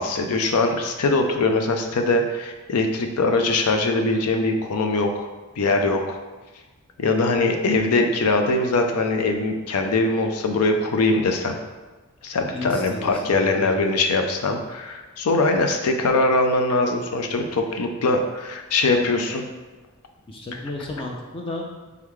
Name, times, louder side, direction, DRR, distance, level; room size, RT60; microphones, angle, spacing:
voice 1, 0.0-5.3 5.6-6.2 7.0-11.6 12.2-19.4, left 2 dB, 90° left, 4 dB, 0.5 m, -22 dB
voice 2, 12.5-13.8 20.3-21.6, left 2 dB, 25° left, -2 dB, 0.4 m, -33 dB
3.4 x 3.2 x 3.6 m, 1.3 s
head